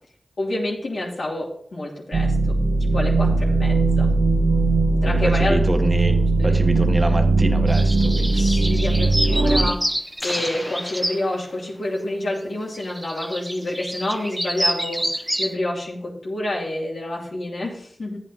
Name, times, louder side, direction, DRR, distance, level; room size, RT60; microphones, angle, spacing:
voice 1, 0.4-4.1 5.0-5.7 6.4-6.6 8.3-9.8 10.2-18.2, left 1 dB, 75° left, -4 dB, 2.8 m, -28 dB
sound 1, 2.1-9.7, right 3 dB, 85° right, 0.8 m, -19 dB
voice 2, 5.0-6.2 6.4-8.4, right 1 dB, 30° right, 5 dB, 1.3 m, -26 dB
sound 2, 7.7-11.2 12.7-15.5, equal, 10° right, 1.1 m, -27 dB
sound 3, 10.2-12.1, left 1 dB, 25° left, 1.3 m, -36 dB
14.0 x 8.7 x 2.9 m, 0.62 s
wide cardioid pair, 60°, 0 cm